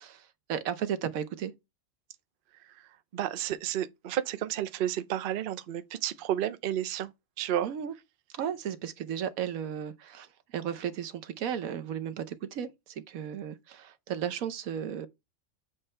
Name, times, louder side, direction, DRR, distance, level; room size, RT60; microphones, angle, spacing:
voice 1, 0.0-1.5 7.6-7.9 8.4-15.1, right 9 dB, 80° right, 1.2 m, -35 dB
voice 2, 2.6-7.7, right 11 dB, 55° right, 0.6 m, -32 dB
7.3 x 3.3 x 5.5 m
omnidirectional pair, 1.4 m